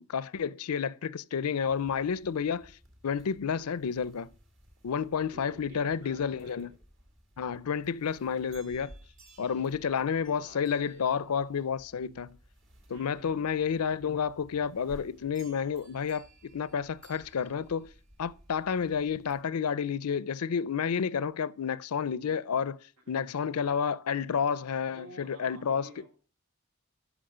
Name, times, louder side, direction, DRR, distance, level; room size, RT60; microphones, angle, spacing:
voice 1, 0.0-2.7 3.0-4.3 4.8-6.7 7.4-8.9 9.4-12.4 12.9-17.9 18.2-22.8 23.1-25.9, left 6 dB, 85° left, 0.5 m, -30 dB
sound 1, 1.6-19.4, right 1 dB, 55° right, 2.3 m, -57 dB
voice 2, 5.3-6.8 9.6-11.3 12.9-13.4 23.1-23.4 24.8-26.2, equal, 85° right, 2.6 m, -52 dB
13.0 x 6.2 x 5.0 m
head